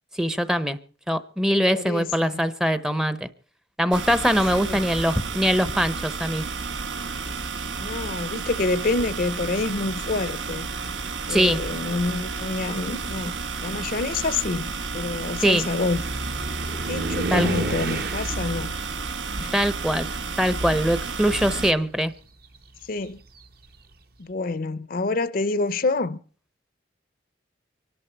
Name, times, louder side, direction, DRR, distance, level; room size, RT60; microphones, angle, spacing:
voice 1, 0.1-0.8 1.1-3.3 3.8-6.4 11.3-11.6 15.4-15.7 17.3-17.5 19.5-20.1 20.4-22.1, equal, 5° right, 0.7 m, -22 dB
voice 2, 1.5-2.5 4.5-4.9 7.8-10.7 11.3-13.3 13.6-16.1 16.9-18.7 19.4-19.5 22.9-23.2 24.2-26.2, left 3 dB, 50° left, 0.6 m, -27 dB
sound 1, 3.9-21.7, right 4 dB, 80° right, 1.3 m, -32 dB
sound 2, 9.0-9.3 10.3-10.4 11.0-20.9 21.1-23.8, right 1 dB, 55° right, 1.2 m, -34 dB
25.0 x 11.5 x 4.5 m
head